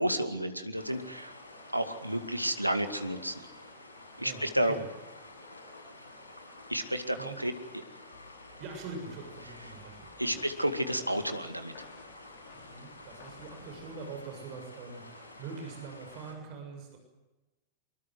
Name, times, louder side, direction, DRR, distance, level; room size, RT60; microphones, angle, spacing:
voice 1, 0.0-1.4 1.7-3.4 4.2-4.7 6.7-7.8 10.2-11.7, right 1 dB, 90° right, 8 dB, 2.2 m, -31 dB
sound 1, 0.7-16.3, left 2 dB, 75° left, 7.6 m, -50 dB
voice 2, 4.2-4.8 7.2-7.4 8.6-10.4 12.5-17.0, right 4 dB, 45° right, 4 dB, 7.0 m, -44 dB
sound 2, 8.1-13.9, left 4 dB, 55° left, 5.0 m, -55 dB
24.5 x 22.5 x 7.8 m, 1.1 s
figure-of-eight pair, 90°, 0 cm